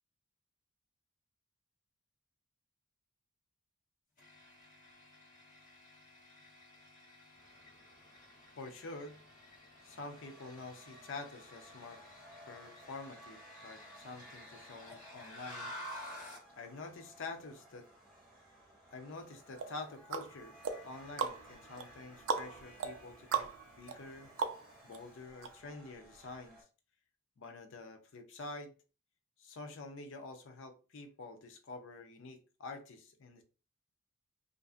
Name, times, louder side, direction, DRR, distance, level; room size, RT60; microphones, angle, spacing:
sound 1, 4.2-16.5, left 1 dB, 35° left, 0.9 m, -52 dB
sound 2, 7.3-26.6, right 1 dB, ahead, 0.9 m, -59 dB
voice 1, 8.6-9.2 9.8-12.0 12.5-15.7 16.6-17.9 18.9-20.6 20.8-23.5 23.8-24.3 24.8-26.6 27.4-28.7 29.4-33.4, left 3 dB, 55° left, 0.5 m, -47 dB
sound 3, 19.6-25.0 25.4-25.5, right 6 dB, 55° right, 0.4 m, -39 dB
2.6 x 2.3 x 2.4 m
head